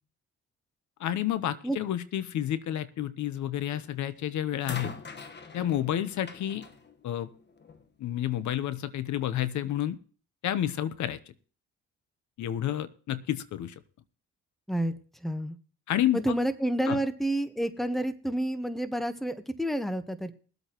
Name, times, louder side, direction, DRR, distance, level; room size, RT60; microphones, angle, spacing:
voice 1, 1.0-5.0 5.5-6.6 7.0-7.3 8.0-10.0 10.4-11.2 12.4-13.7 15.9-16.3 16.9-17.0, left 11 dB, 70° left, 14 dB, 0.9 m, -30 dB
sound 1, 3.7-4.1 4.6-7.9 8.9-9.0, left 4 dB, 35° left, 1.3 m, -43 dB
voice 2, 15.2-15.5 16.1-20.3, right 1 dB, ahead, 11 dB, 1.0 m, -29 dB
22.0 x 8.2 x 3.0 m, 0.40 s
cardioid pair, 90°, 30 cm